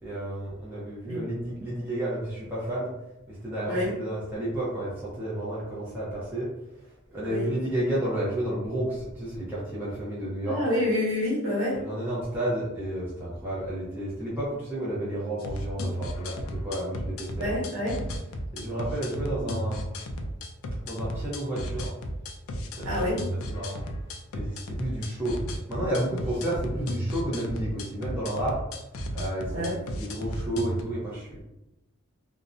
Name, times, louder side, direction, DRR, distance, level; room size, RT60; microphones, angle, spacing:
voice 1, 0.0-2.9 3.3-10.6 11.8-17.6 18.2-19.9 20.8-21.9 22.7-23.8 24.3-28.6 29.1-31.4, right 1 dB, 10° right, -8 dB, 0.5 m, -31 dB
voice 2, 10.4-11.8 17.3-18.0 22.8-23.2 29.5-29.8, left 1 dB, 65° right, -6 dB, 1.2 m, -27 dB
sound 1, 15.4-30.8, equal, 80° left, 0.3 m, -34 dB
2.5 x 2.0 x 2.4 m, 0.92 s
head